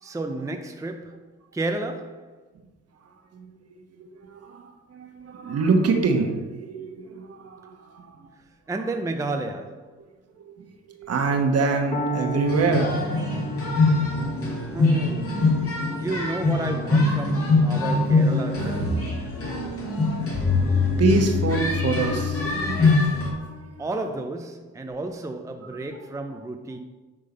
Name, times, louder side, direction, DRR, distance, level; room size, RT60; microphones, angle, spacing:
voice 1, 0.0-1.3 1.5-2.4 8.7-9.9 14.7-15.5 15.9-19.0 23.8-26.8, right 2 dB, 10° right, 0.6 m, -31 dB
voice 2, 3.3-8.3 10.5-12.9 20.4-23.9 24.9-25.0 26.3-26.4, right 4 dB, 55° right, 1.3 m, -26 dB
Piano, 11.9-19.8, right 2 dB, 25° left, 1.3 m, -36 dB
sound 1, 12.5-23.3, left 3 dB, 50° left, 2.4 m, -23 dB
10.0 x 3.8 x 5.2 m
cardioid pair, 90°, 30 cm